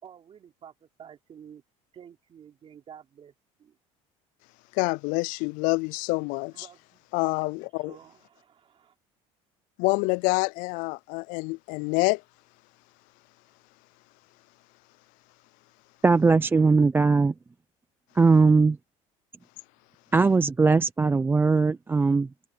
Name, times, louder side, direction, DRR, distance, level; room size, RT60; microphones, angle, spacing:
voice 1, 0.0-1.6 1.9-3.3 3.6-3.8 6.5-8.9, right 8 dB, 40° right, 3.7 m, -50 dB
voice 2, 4.7-6.7 7.1-8.0 9.8-12.2, left 26 dB, 80° left, 0.4 m, -27 dB
voice 3, 16.0-17.3 18.2-18.8 20.1-22.5, right 4 dB, 15° right, 0.5 m, -20 dB
cardioid pair, 115°, 14 cm